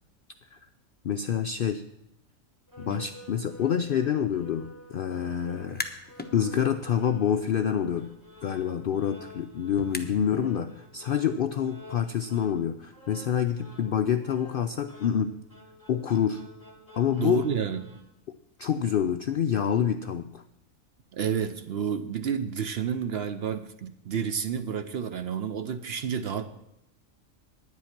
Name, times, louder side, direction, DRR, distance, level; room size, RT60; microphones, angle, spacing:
voice 1, 1.0-1.8 2.8-5.8 6.3-8.1 8.4-15.3 15.9-16.4 17.0-17.4 18.6-20.4, left 8 dB, 65° left, 8 dB, 0.5 m, -27 dB
sound 1, 2.7-18.0, equal, 15° right, 1.8 m, -50 dB
sound 2, 5.6-6.3 6.7-10.5, left 2 dB, 10° left, 0.7 m, -41 dB
voice 2, 17.2-17.9 21.1-26.4, right 7 dB, 55° right, 10 dB, 0.8 m, -30 dB
10.5 x 9.6 x 5.9 m, 0.84 s
omnidirectional pair, 1.4 m